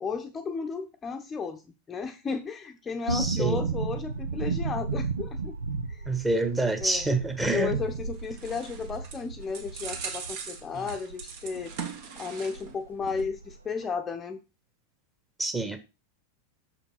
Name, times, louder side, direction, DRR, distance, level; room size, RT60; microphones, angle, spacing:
voice 1, 0.0-1.6 1.9-5.5 5.9-6.0 6.8-7.2 7.5-11.7 12.2-14.4, left 5 dB, 20° left, 0.8 m, -34 dB
voice 2, 3.1-3.6 6.1-7.7 15.4-15.8, right 2 dB, 10° right, 1.5 m, -27 dB
sound 1, 3.1-11.9 12.2-12.3 12.5-13.6 13.8-13.9, right 5 dB, 75° right, 0.8 m, -34 dB
sound 2, 7.9-12.8 13.1-13.2, right 6 dB, 50° right, 1.7 m, -40 dB
7.2 x 5.9 x 5.5 m
figure-of-eight pair, 90°, 0 cm